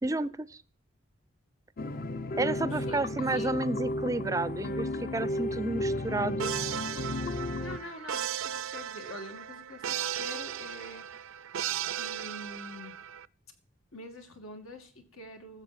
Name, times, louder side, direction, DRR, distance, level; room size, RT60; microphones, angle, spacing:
voice 1, 0.0-0.6 2.4-6.5, right 2 dB, 15° right, 18 dB, 0.4 m, -31 dB
sound 1, 1.8-7.8, left 1 dB, 45° left, 0.6 m, -33 dB
voice 2, 2.7-3.6 7.4-11.0 12.0-12.9 13.9-15.6, left 1 dB, 90° left, 5 dB, 2.4 m, -45 dB
sound 2, 6.4-13.3, right 10 dB, 75° right, 0.5 m, -36 dB
14.5 x 7.4 x 4.2 m, 0.42 s
head